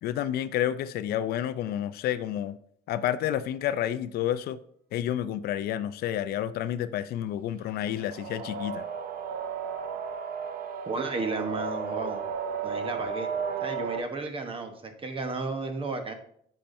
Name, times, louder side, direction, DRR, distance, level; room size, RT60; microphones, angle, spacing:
voice 1, 0.0-2.6 2.9-4.6 4.9-8.9, left 11 dB, 65° left, 0.4 m, -30 dB
sound 1, 7.8-14.0, right 6 dB, 60° right, 0.6 m, -34 dB
voice 2, 10.9-12.2 12.6-13.3 13.6-16.1, right 3 dB, 30° right, 1.0 m, -33 dB
8.6 x 5.7 x 2.6 m
cardioid pair, 110°, 17 cm